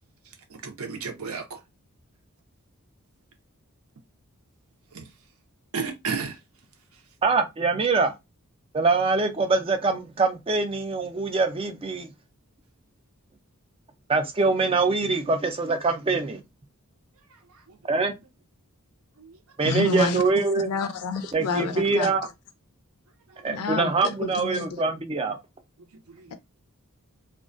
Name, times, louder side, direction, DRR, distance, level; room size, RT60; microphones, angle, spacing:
voice 1, 0.5-1.6 4.9-5.1 5.7-6.4 17.7-17.8 19.2-19.4 23.3-23.4 25.9-26.3, right 5 dB, 80° right, 0.6 m, -33 dB
voice 2, 7.2-8.1 8.7-12.1 14.1-16.4 17.9-18.1 19.6-20.7 21.3-22.2 23.4-25.4, right 3 dB, 25° right, 0.4 m, -24 dB
voice 3, 19.6-20.2 20.6-22.1 23.4-24.8, left 4 dB, 90° left, 0.4 m, -29 dB
2.3 x 2.1 x 2.5 m
head